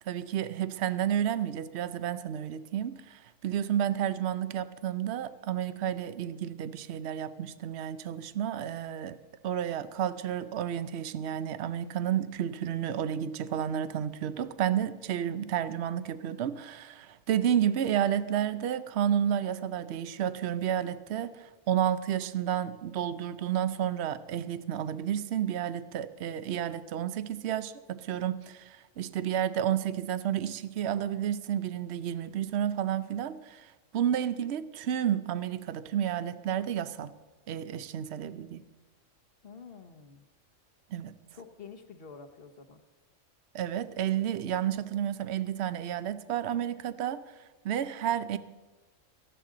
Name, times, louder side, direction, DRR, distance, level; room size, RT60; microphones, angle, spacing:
voice 1, 0.1-9.2 9.4-37.1 37.5-38.6 40.9-41.1 43.5-47.2 47.6-48.4, right 10 dB, 60° right, 0.9 m, -31 dB
voice 2, 39.4-40.2 41.3-42.8, left 5 dB, 45° left, 1.3 m, -48 dB
18.5 x 14.5 x 3.9 m
omnidirectional pair, 1.4 m